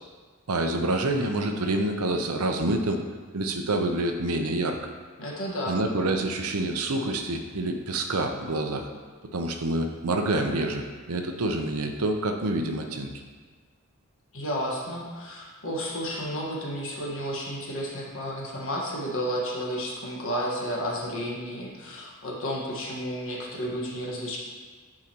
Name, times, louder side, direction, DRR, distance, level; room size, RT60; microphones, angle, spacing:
voice 1, 0.5-3.0 3.3-4.8 5.7-8.9 9.3-13.1, right 2 dB, 85° right, 4 dB, 0.7 m, -27 dB
voice 2, 5.2-5.9 14.3-24.4, equal, 65° left, -3 dB, 1.5 m, -32 dB
10.5 x 4.9 x 3.0 m, 1.5 s
head